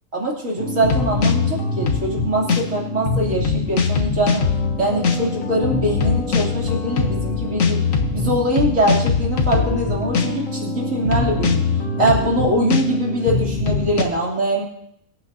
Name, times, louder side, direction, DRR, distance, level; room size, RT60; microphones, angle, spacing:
voice 1, 0.1-4.4 4.8-7.8 8.1-11.6 12.0-14.6, right 1 dB, 80° right, -3 dB, 3.4 m, -22 dB
sound 1, 0.6-14.0, left 4 dB, 80° left, 1.5 m, -22 dB
25.0 x 8.4 x 2.8 m, 0.74 s
omnidirectional pair, 1.3 m